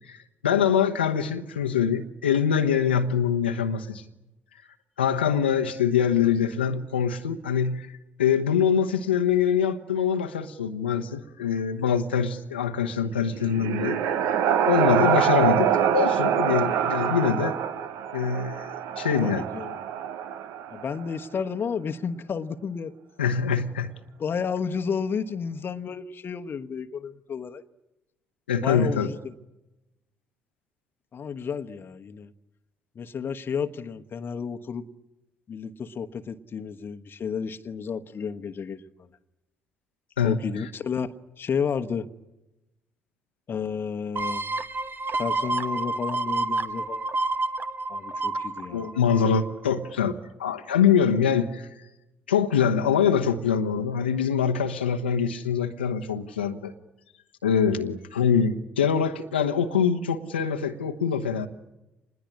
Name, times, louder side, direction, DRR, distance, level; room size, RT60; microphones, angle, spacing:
voice 1, 0.4-4.0 5.0-7.9 8.2-14.4 14.7-17.5 18.1-18.7 19.0-19.4 23.2-23.9 28.5-29.1 40.2-40.7 48.7-51.7 52.3-56.7 57.4-61.5, left 7 dB, 85° left, 5 dB, 1.1 m, -24 dB
sound 1, 13.2-21.0, right 9 dB, 60° right, 1.2 m, -25 dB
voice 2, 19.2-19.8 20.7-22.9 24.2-27.6 28.6-29.2 31.1-32.3 32.9-34.8 35.5-38.9 40.2-42.1 43.5-44.4 45.1-47.1 47.9-48.9, left 6 dB, 40° left, 8 dB, 1.1 m, -31 dB
sound 2, 44.2-49.6 50.1-50.2, right 3 dB, 35° right, 1.4 m, -29 dB
27.0 x 20.5 x 9.9 m, 0.98 s
figure-of-eight pair, 45°, 6 cm